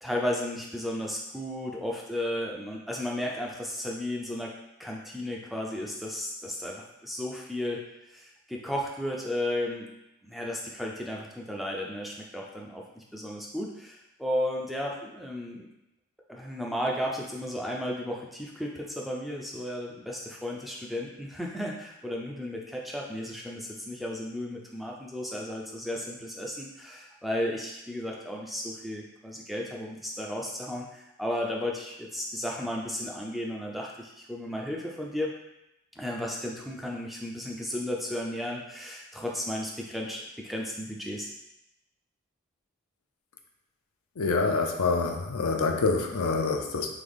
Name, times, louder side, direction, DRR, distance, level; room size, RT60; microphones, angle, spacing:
voice 1, 0.0-4.5 4.8-9.9 10.2-15.7 16.3-35.3 36.0-41.3, left 1 dB, ahead, -2 dB, 0.4 m, -34 dB
voice 2, 44.2-46.9, left 4 dB, 85° left, 3 dB, 0.6 m, -26 dB
3.8 x 3.3 x 3.5 m, 0.90 s
head